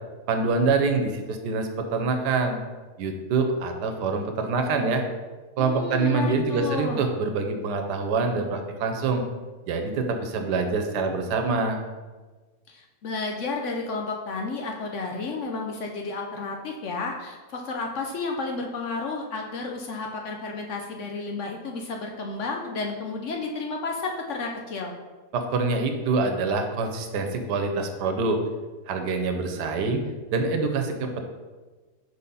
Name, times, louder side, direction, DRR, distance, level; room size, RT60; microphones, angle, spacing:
voice 1, 0.3-2.6 3.0-5.0 5.6-9.2 9.7-11.8 25.3-28.4 28.9-30.0 30.3-31.2, right 4 dB, 90° right, 5 dB, 1.4 m, -25 dB
voice 2, 5.6-7.0 12.7-24.9, left 3 dB, 65° left, 2 dB, 0.8 m, -32 dB
4.9 x 4.1 x 5.4 m, 1.3 s
omnidirectional pair, 1.7 m